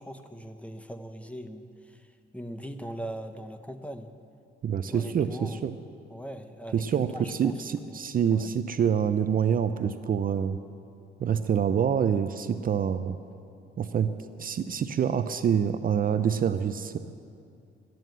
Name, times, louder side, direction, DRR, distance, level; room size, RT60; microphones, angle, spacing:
voice 1, 0.0-4.1 4.9-5.7 6.1-8.5, equal, 5° left, 8 dB, 0.8 m, -41 dB
voice 2, 4.6-5.7 6.7-10.6 11.2-13.2 13.8-14.1 14.4-17.0, right 8 dB, 45° right, 11 dB, 0.5 m, -26 dB
12.5 x 9.3 x 7.9 m, 2.4 s
cardioid pair, 90°, 20 cm